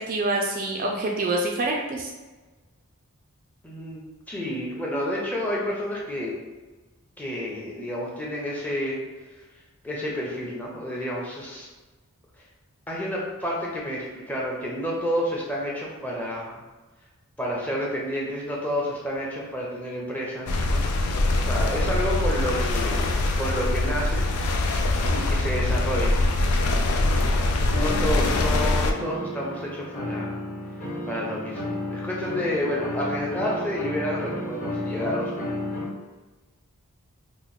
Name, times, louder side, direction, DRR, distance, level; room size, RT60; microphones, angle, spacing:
voice 1, 0.1-2.1, right 2 dB, 40° right, 0 dB, 0.3 m, -26 dB
voice 2, 3.6-6.4 7.2-9.0 9.8-11.7 12.9-16.6 17.4-20.8 21.4-24.4 25.1-26.2 27.4-30.4 31.1-31.6 31.9-35.6, equal, 5° left, -4 dB, 0.6 m, -30 dB
sound 1, 20.5-28.9, left 2 dB, 80° left, 0.4 m, -23 dB
sound 2, 27.7-35.9, left 1 dB, 35° left, 1.0 m, -32 dB
3.0 x 2.1 x 4.0 m, 1.2 s
head